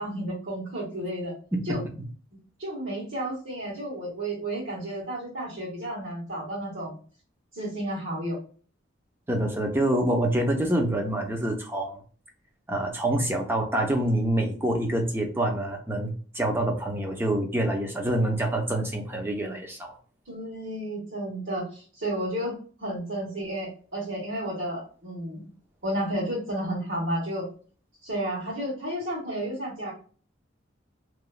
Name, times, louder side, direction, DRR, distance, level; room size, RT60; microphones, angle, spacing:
voice 1, 0.0-1.3 1.6-1.8 2.6-6.9 7.5-8.4 20.2-25.5 25.8-27.5 28.0-29.9, right 1 dB, 75° right, -10 dB, 1.4 m, -32 dB
voice 2, 9.3-12.0 12.7-20.0, right 1 dB, 10° right, 2 dB, 0.5 m, -26 dB
2.9 x 2.3 x 2.4 m, 0.42 s
head